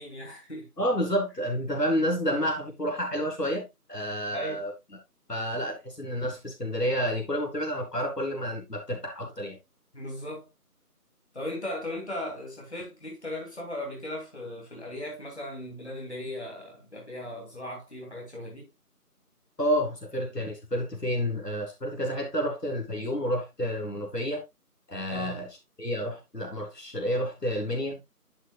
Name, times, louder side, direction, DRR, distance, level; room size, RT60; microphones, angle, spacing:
voice 1, 0.0-0.7 4.3-4.6 9.9-10.5 11.3-18.7 25.1-25.4, left 1 dB, 45° left, 2.6 m, -37 dB
voice 2, 0.8-4.7 5.3-9.6 19.6-24.4 24.9-25.5 25.8-28.0, equal, 85° left, 3.5 m, -30 dB
11.0 x 6.1 x 2.3 m
figure-of-eight pair, 175°, 47 cm